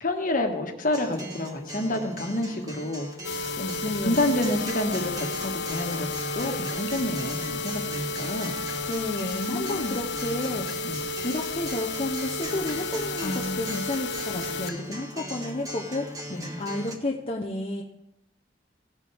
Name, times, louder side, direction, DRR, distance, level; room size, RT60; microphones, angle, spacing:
voice 1, 0.0-3.1 3.6-3.8 4.0-6.1 6.3-8.5 9.3-9.9 10.8-11.0 13.2-13.8 16.3-16.5, left 1 dB, 50° left, 4 dB, 1.5 m, -29 dB
Acoustic guitar, 0.9-16.9, equal, 20° right, 1.6 m, -39 dB
sound 1, 3.2-14.7 15.2-15.3 15.7-15.8 16.2-16.3, left 3 dB, 70° left, 0.5 m, -32 dB
voice 2, 3.8-4.3 8.9-10.7 11.2-17.8, left 2 dB, 35° left, -1 dB, 0.8 m, -31 dB
18.0 x 8.0 x 3.5 m, 0.89 s
head